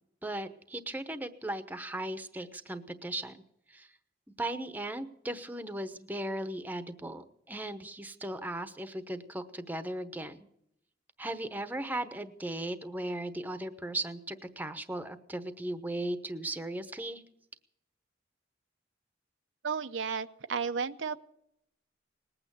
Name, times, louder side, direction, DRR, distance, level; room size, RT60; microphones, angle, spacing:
voice 1, 0.2-3.4 3.7-3.9 4.4-10.5 11.2-17.2, right 1 dB, 10° right, 10 dB, 0.9 m, -37 dB
voice 2, 19.6-21.2, right 5 dB, 85° right, 10 dB, 0.7 m, -33 dB
20.0 x 8.8 x 8.1 m, 0.76 s
head